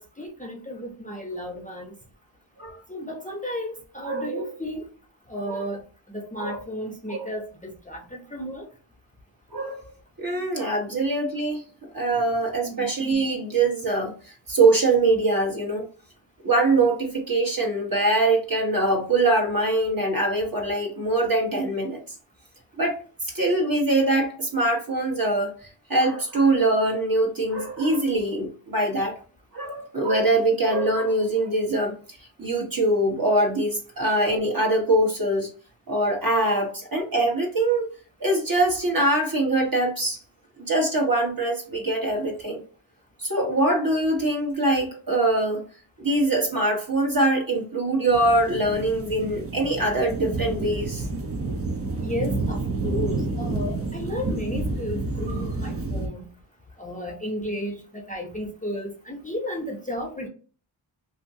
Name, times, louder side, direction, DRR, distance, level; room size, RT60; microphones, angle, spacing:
voice 1, 0.2-2.0 2.9-4.8 5.3-5.8 6.1-8.6 12.6-12.9 52.0-56.3 56.8-60.3, left 1 dB, 15° left, 1 dB, 0.7 m, -33 dB
voice 2, 4.0-4.4 5.5-5.6 6.4-6.6 7.1-7.3 9.5-9.9 10.2-11.6 11.9-14.1 14.5-15.9 16.4-22.0 22.8-23.0 23.3-25.5 25.9-29.2 29.5-31.9 32.4-35.5 35.9-37.8 38.2-40.2 40.6-42.6 43.2-45.7 46.0-51.0, right 2 dB, 45° right, 0 dB, 1.3 m, -23 dB
sound 1, 48.1-56.1, right 3 dB, 30° right, 0.6 m, -29 dB
2.8 x 2.7 x 2.6 m, 0.38 s
wide cardioid pair, 45°, 48 cm